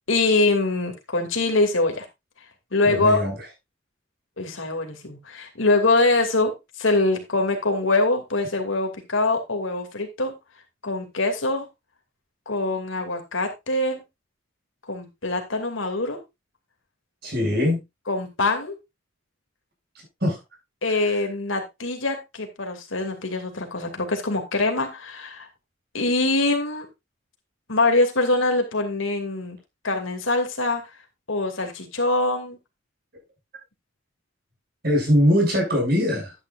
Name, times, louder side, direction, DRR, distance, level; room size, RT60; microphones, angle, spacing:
voice 1, 0.1-2.1 2.7-3.2 4.4-6.5 6.8-10.3 10.8-11.7 12.5-14.0 14.9-16.2 18.1-18.8 20.8-25.5 25.9-26.9 27.7-29.6 29.8-30.8 31.3-32.6, left 2 dB, 80° left, 2.6 m, -23 dB
voice 2, 2.8-3.3 17.2-17.8 20.2-20.4 34.8-36.3, equal, 50° right, 6.6 m, -21 dB
12.0 x 9.7 x 2.5 m
head